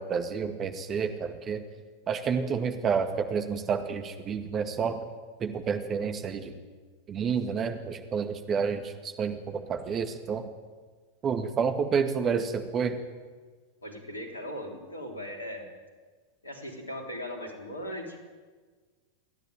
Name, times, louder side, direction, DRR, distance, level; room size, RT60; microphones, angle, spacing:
voice 1, 0.0-1.6 2.1-5.0 5.4-6.5 7.1-10.5 11.2-13.0, right 6 dB, 25° right, 7 dB, 2.0 m, -29 dB
voice 2, 13.8-15.6 16.4-18.2, equal, 75° left, 3 dB, 3.7 m, -38 dB
29.0 x 11.0 x 9.1 m, 1.5 s
figure-of-eight pair, 90°, 0 cm